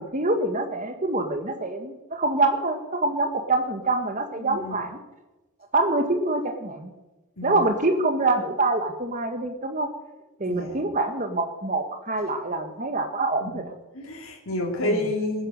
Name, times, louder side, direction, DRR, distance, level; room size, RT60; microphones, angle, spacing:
voice 1, 0.0-5.0 5.7-6.9 7.4-9.9 10.4-13.6 14.8-15.0, right 2 dB, 35° right, 6 dB, 1.5 m, -25 dB
voice 2, 4.4-4.8 7.4-7.6 10.5-10.8 13.4-13.5 13.9-15.5, left 1 dB, 65° left, -3 dB, 3.1 m, -29 dB
21.0 x 10.0 x 6.6 m, 1.0 s
head